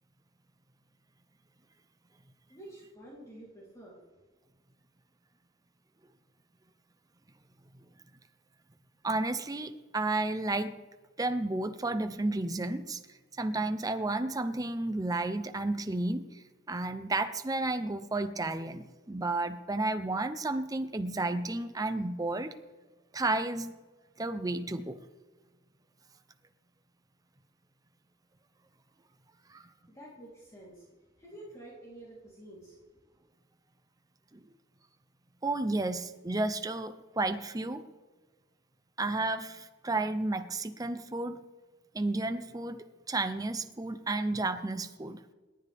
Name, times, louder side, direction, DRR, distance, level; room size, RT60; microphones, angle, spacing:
voice 1, 2.5-4.0 29.9-30.9 31.2-32.8, right 1 dB, 15° left, -6 dB, 3.4 m, -49 dB
voice 2, 9.0-10.8 11.2-13.0 13.4-22.5 23.1-23.8 24.2-25.0 29.5-29.6 34.3-34.4 35.4-37.9 39.0-41.4 41.9-45.2, right 2 dB, 20° right, 9 dB, 0.6 m, -32 dB
28.5 x 11.0 x 3.5 m, 1.3 s
head